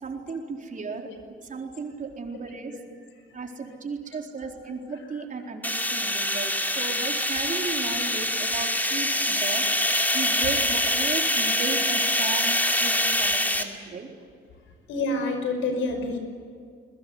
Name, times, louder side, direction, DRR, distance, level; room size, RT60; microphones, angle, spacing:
voice 1, 0.0-1.1 1.5-2.8 3.3-9.6 10.1-14.1, right 4 dB, 40° right, 2 dB, 4.2 m, -35 dB
voice 2, 2.7-3.6 4.9-5.2 6.9-7.0 9.6-9.7 14.9-16.2, left 2 dB, 90° left, 6 dB, 5.7 m, -30 dB
sound 1, 5.6-13.6, left 1 dB, 10° left, 2.8 m, -25 dB
22.0 x 21.0 x 9.5 m, 2.2 s
cardioid pair, 90°, 20 cm